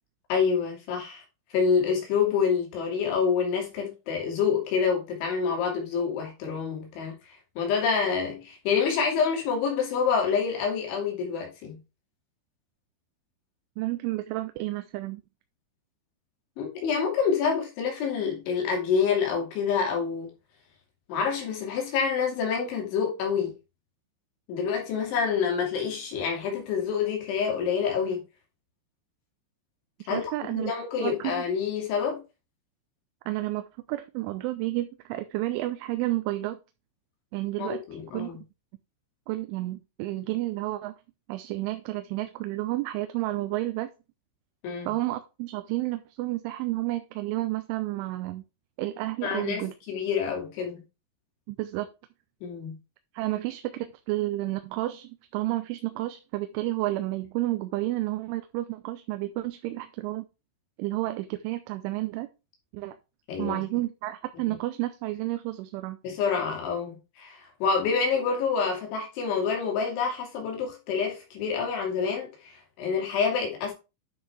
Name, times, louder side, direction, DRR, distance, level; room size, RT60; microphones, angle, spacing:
voice 1, 0.3-1.2 1.5-11.8 16.6-20.3 21.1-23.6 24.5-28.2 30.1-32.2 37.6-38.4 44.6-44.9 49.2-50.8 52.4-52.8 63.3-63.6 64.5-64.6 66.0-73.7, left 6 dB, 75° left, 4.8 m, -27 dB
voice 2, 13.8-15.2 30.1-30.7 31.0-31.4 33.3-36.6 37.3-37.8 38.1-38.3 39.3-40.9 41.3-43.9 44.8-48.4 48.8-49.7 51.5-51.9 53.1-60.3 60.8-62.3 62.7-63.0 63.4-66.0, right 17 dB, 85° right, 3.1 m, -31 dB
10.0 x 6.3 x 3.4 m
omnidirectional pair, 5.5 m